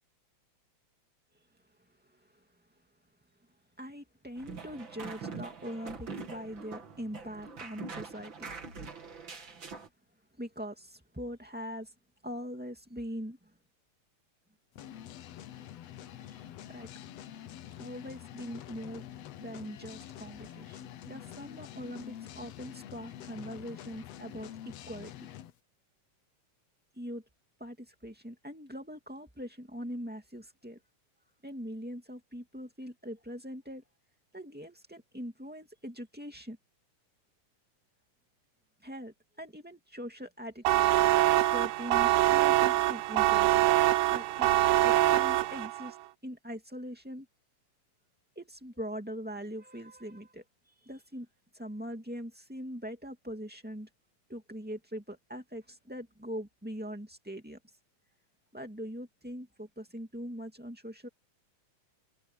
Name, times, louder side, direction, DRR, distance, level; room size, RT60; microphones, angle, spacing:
voice 1, 2.1-2.4 3.8-8.5 10.4-11.9 12.2-13.5 16.2-16.9 17.7-19.1 19.4-25.3 26.9-27.2 27.6-30.8 31.4-33.8 34.3-36.6 38.8-41.0 41.5-43.5 44.1-44.5 44.8-46.0 46.2-47.2 48.3-51.3 51.5-53.9 54.3-57.6 58.5-61.1, equal, 5° right, 1.6 m, -42 dB
sound 1, 4.4-9.9, right 4 dB, 40° right, 3.1 m, -43 dB
sound 2, 14.8-25.5, left 11 dB, 65° left, 1.9 m, -46 dB
sound 3, 40.6-45.9, right 15 dB, 75° right, 1.6 m, -24 dB
omnidirectional pair, 3.6 m